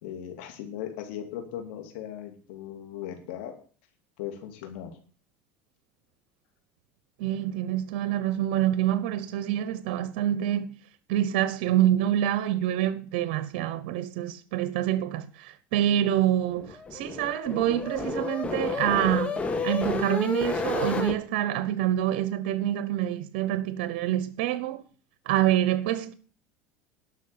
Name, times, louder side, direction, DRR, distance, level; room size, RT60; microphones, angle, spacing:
voice 1, 0.0-3.5 4.2-4.9, left 10 dB, 85° left, 2.7 m, -38 dB
voice 2, 7.2-10.7 11.1-19.3 19.6-24.8 25.3-26.1, right 12 dB, 80° right, 1.0 m, -26 dB
sound 1, 16.5-21.2, left 4 dB, 20° left, 1.9 m, -31 dB
11.5 x 6.0 x 8.8 m
supercardioid pair, 125°, 6 cm